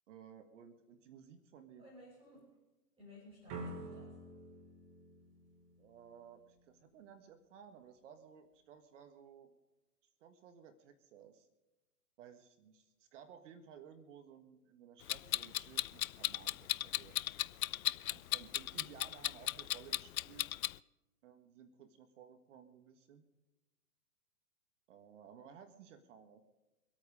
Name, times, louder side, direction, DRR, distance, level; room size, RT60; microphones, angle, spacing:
voice 1, 0.1-1.9 5.8-9.5 10.2-11.5 12.2-17.1 18.0-20.5 21.2-23.3 24.9-26.4, right 8 dB, 50° right, 8 dB, 1.7 m, -57 dB
voice 2, 1.8-2.6 3.0-4.2, left 1 dB, 10° right, -5 dB, 5.0 m, -57 dB
sound 1, 3.5-6.4, right 2 dB, 30° right, 2.8 m, -48 dB
Clock, 15.1-20.7, left 13 dB, 65° left, 0.5 m, -36 dB
24.5 x 8.8 x 5.1 m, 1.1 s
hypercardioid pair, 115°, 46 cm